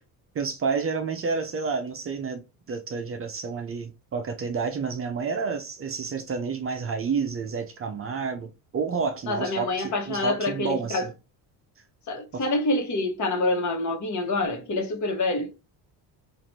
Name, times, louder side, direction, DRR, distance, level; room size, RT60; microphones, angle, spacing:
voice 1, 0.3-2.4 2.7-11.1 12.3-12.4, right 5 dB, 35° right, 0.5 m, -30 dB
voice 2, 9.3-11.0 12.1-15.5, left 2 dB, 45° left, 1.2 m, -26 dB
3.1 x 2.5 x 4.1 m
cardioid pair, 120°, 41 cm